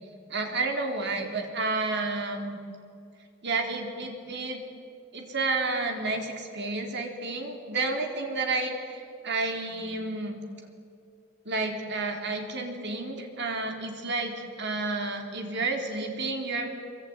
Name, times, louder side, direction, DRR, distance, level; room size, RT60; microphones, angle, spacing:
voice 1, 0.3-2.5 3.4-4.6 5.1-10.4 11.5-16.7, right 3 dB, 55° right, 3 dB, 4.1 m, -31 dB
25.5 x 24.5 x 9.6 m, 2.5 s
head